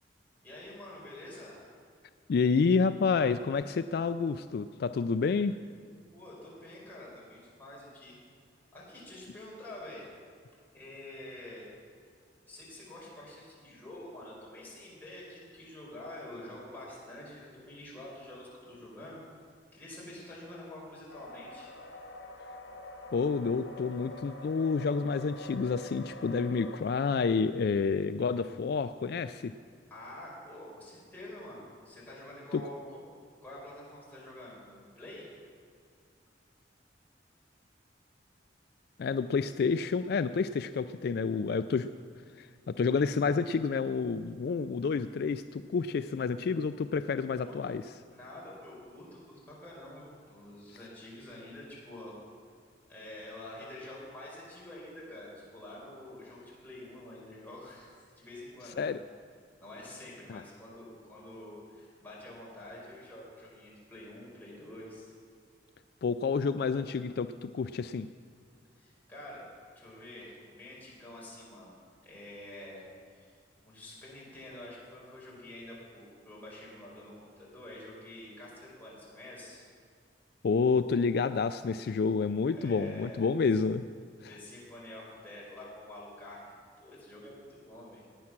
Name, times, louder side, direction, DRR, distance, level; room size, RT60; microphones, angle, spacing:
voice 1, 0.4-1.6 6.1-8.2 8.7-10.0 10.7-11.7 12.5-19.2 19.7-21.7 29.9-33.0 33.4-35.3 47.3-47.7 48.1-52.2 52.9-59.0 59.6-65.1 68.8-69.5 69.7-71.8 72.0-73.3 73.6-79.7 82.5-83.3 84.3-88.0, left 1 dB, 10° left, -6 dB, 4.5 m, -47 dB
voice 2, 2.3-5.5 23.1-29.5 32.5-32.6 39.0-41.9 42.4-47.8 58.8-59.0 60.3-60.4 66.0-68.1 80.4-83.8 84.2-84.3, left 5 dB, 60° left, 11 dB, 0.3 m, -29 dB
sound 1, 21.1-26.8, left 1 dB, 85° left, 1.5 m, -46 dB
17.5 x 9.6 x 6.0 m, 2.1 s
head